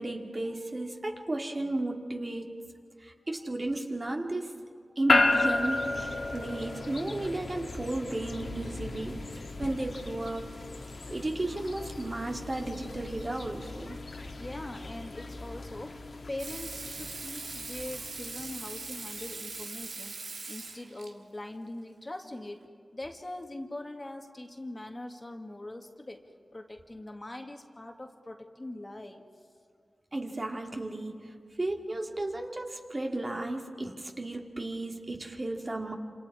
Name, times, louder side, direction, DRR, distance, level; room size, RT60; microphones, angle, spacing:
voice 1, 0.0-2.6 3.0-10.6 11.1-14.0 30.1-36.0, right 2 dB, 35° right, 2 dB, 2.3 m, -34 dB
sound 1, 5.1-19.4, left 2 dB, 60° left, 1.9 m, -34 dB
voice 2, 14.2-26.3 26.5-29.3, left 1 dB, 25° left, 4 dB, 1.8 m, -42 dB
Water tap faucet / Sink (filling or washing), 16.4-21.1 22.6-22.7, right 4 dB, 75° right, 1.8 m, -41 dB
27.5 x 27.0 x 4.9 m, 2.1 s
cardioid pair, 65°, 0 cm